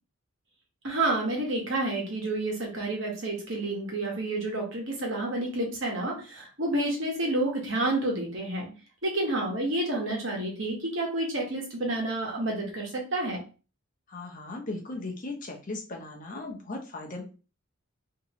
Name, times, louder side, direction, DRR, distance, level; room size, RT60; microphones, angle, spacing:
voice 1, 0.8-8.7 9.0-13.4, right 2 dB, 55° right, -1 dB, 1.1 m, -29 dB
voice 2, 14.1-17.2, left 2 dB, 35° left, 1 dB, 0.6 m, -37 dB
3.0 x 2.8 x 2.9 m, 0.34 s
head